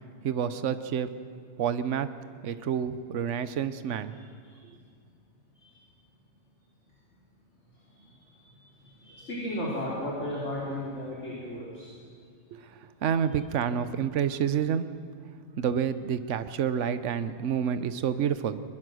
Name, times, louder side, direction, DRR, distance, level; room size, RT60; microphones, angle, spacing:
voice 1, 0.2-1.1 1.6-2.1 2.4-4.1 12.5-14.9 15.6-18.6, right 8 dB, 60° right, 12 dB, 1.1 m, -29 dB
voice 2, 4.1-4.6 5.6-5.8 7.9-11.9, left 1 dB, 55° left, -5 dB, 3.8 m, -36 dB
21.0 x 21.0 x 6.3 m, 2.3 s
omnidirectional pair, 1.5 m